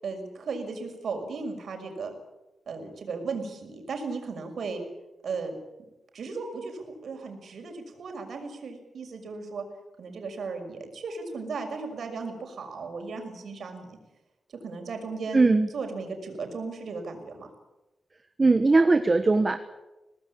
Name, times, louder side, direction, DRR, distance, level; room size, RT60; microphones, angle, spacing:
voice 1, 0.0-2.1 2.7-4.8 5.2-5.6 6.1-9.6 10.0-14.0 14.5-15.5 15.7-17.5, right 4 dB, 75° right, 4 dB, 6.0 m, -36 dB
voice 2, 15.3-15.7 18.4-19.6, right 3 dB, 30° right, 9 dB, 1.4 m, -20 dB
24.5 x 19.0 x 8.7 m, 0.99 s
wide cardioid pair, 120°, 0 cm